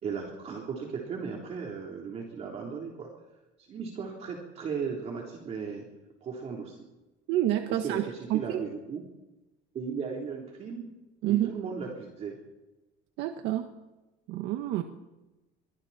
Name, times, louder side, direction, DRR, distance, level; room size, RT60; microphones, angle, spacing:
voice 1, 0.0-3.1 3.7-5.9 6.2-6.9 7.8-9.0 9.7-10.9 11.2-12.4, right 6 dB, 35° right, -1 dB, 3.8 m, -36 dB
voice 2, 7.3-8.6 11.2-11.5 13.2-13.7 14.3-14.8, right 13 dB, 75° right, 5 dB, 1.6 m, -28 dB
27.0 x 23.5 x 4.4 m, 1.1 s
cardioid pair, 160°, 19 cm